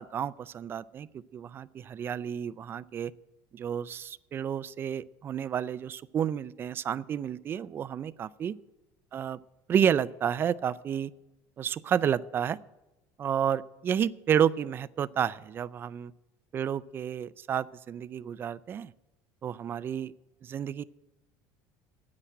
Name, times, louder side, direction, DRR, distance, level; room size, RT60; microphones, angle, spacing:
voice 1, 0.0-3.1 3.5-8.5 9.1-9.4 9.7-11.1 11.6-12.6 13.2-16.1 16.5-18.9 19.4-20.1 20.4-20.8, right 8 dB, 30° right, 18 dB, 0.4 m, -30 dB
9.9 x 8.6 x 9.0 m, 1.0 s
cardioid pair, 145°, 8 cm